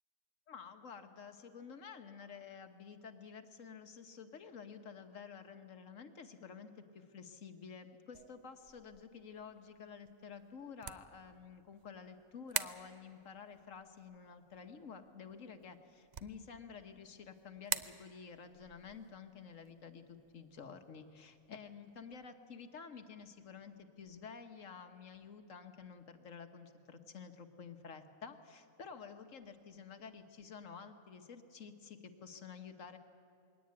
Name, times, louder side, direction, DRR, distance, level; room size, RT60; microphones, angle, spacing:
voice 1, 0.5-20.0 20.3-33.0, left 6 dB, 65° left, 7 dB, 1.5 m, -51 dB
sound 1, 8.1-22.3, right 7 dB, 55° right, 0.5 m, -48 dB
21.5 x 17.0 x 9.5 m, 2.6 s
omnidirectional pair, 1.5 m